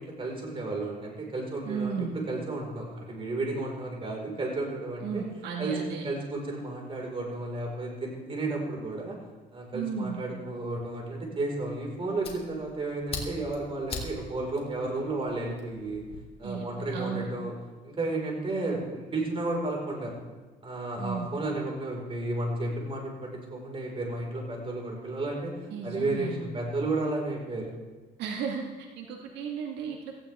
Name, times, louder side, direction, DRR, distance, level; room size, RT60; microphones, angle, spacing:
voice 1, 0.0-2.0 2.3-5.2 5.6-9.2 9.5-16.0 16.4-17.5 17.8-20.2 20.6-25.5 25.8-27.7, right 2 dB, 30° right, -1 dB, 5.0 m, -32 dB
voice 2, 1.7-2.2 5.0-6.1 9.7-10.2 16.4-17.3 21.0-21.3 25.7-26.5 28.2-30.2, right 6 dB, 85° right, 1 dB, 1.9 m, -34 dB
Fire, 11.6-16.2, left 3 dB, 35° left, 3.1 m, -42 dB
17.5 x 15.5 x 3.6 m, 1.2 s
cardioid pair, 110°, 17 cm